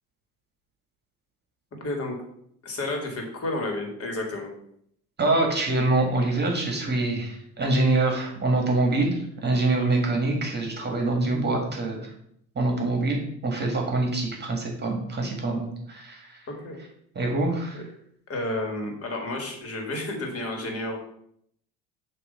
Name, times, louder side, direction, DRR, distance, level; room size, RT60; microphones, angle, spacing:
voice 1, 1.8-2.2 2.6-4.5 16.6-16.8 17.7-17.8 18.3-21.0, left 2 dB, 35° left, 2 dB, 2.1 m, -31 dB
voice 2, 5.2-12.1 12.6-16.4 17.2-17.8, right 2 dB, 25° right, 1 dB, 1.9 m, -25 dB
6.7 x 3.0 x 5.5 m, 0.70 s
hypercardioid pair, 75°, 39 cm